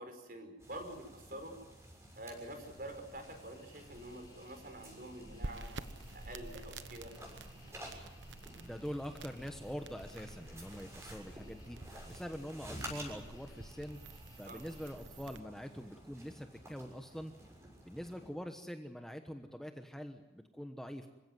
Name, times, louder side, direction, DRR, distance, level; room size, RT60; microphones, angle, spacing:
voice 1, 0.0-1.5 2.1-5.9 6.1-7.1 14.4-14.6, right 1 dB, 50° right, 6 dB, 5.2 m, -47 dB
sound 1, 0.6-18.3, equal, 15° right, 6.5 m, -52 dB
sound 2, 2.7-15.0, left 1 dB, 20° left, 5.6 m, -60 dB
sound 3, 5.4-15.4, right 2 dB, 85° right, 1.1 m, -50 dB
voice 2, 8.6-11.8 12.0-14.0 14.3-17.3 17.8-21.1, equal, 5° left, 5 dB, 1.1 m, -44 dB
27.0 x 16.5 x 9.3 m, 1.1 s
head